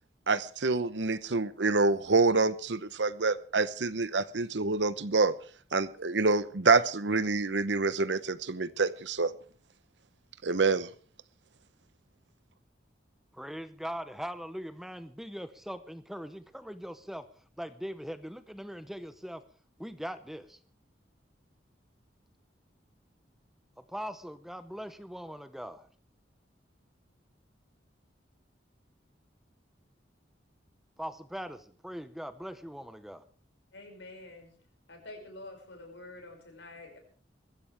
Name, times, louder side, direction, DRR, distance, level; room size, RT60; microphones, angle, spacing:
voice 1, 0.3-5.3 5.7-9.3 10.4-10.9, right 3 dB, 75° right, 15 dB, 0.9 m, -27 dB
voice 2, 13.3-17.3 17.6-19.4 19.8-20.6 23.8-25.9 31.0-33.2, equal, ahead, 11 dB, 0.7 m, -41 dB
voice 3, 33.7-34.5 34.9-37.0, left 2 dB, 80° left, 3 dB, 6.2 m, -47 dB
21.5 x 15.5 x 3.5 m, 0.43 s
head